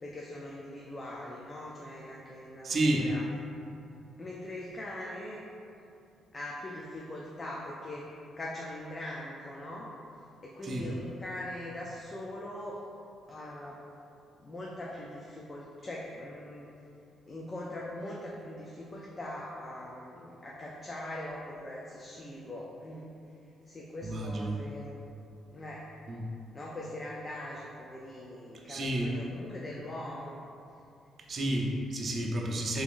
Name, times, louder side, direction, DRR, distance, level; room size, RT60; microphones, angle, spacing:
voice 1, 0.0-3.3 4.2-5.4 6.3-8.1 8.4-9.9 10.4-12.8 13.3-13.8 14.4-16.7 17.3-23.1 23.7-25.0 25.5-25.9 26.5-30.4, left 1 dB, 35° left, -3 dB, 0.4 m, -41 dB
voice 2, 2.6-3.1 10.6-10.9 24.0-24.6 26.1-26.3 28.7-29.1 31.3-32.8, right 1 dB, 50° right, -1 dB, 0.5 m, -30 dB
3.4 x 3.4 x 2.5 m, 2.6 s
cardioid pair, 90°, 0 cm